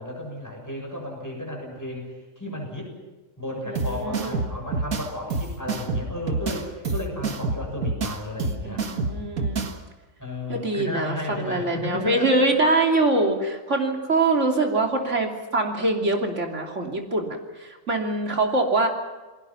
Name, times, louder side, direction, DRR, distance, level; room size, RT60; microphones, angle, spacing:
voice 1, 0.0-2.9 3.4-8.8 10.2-12.3, left 1 dB, 10° left, 0 dB, 6.9 m, -33 dB
voice 2, 3.7-4.5 8.6-9.7 10.5-18.9, right 2 dB, 55° right, 2 dB, 3.4 m, -24 dB
sound 1, 3.7-9.7, right 3 dB, 85° right, 2.2 m, -28 dB
29.0 x 20.5 x 5.8 m, 1.2 s
omnidirectional pair, 1.4 m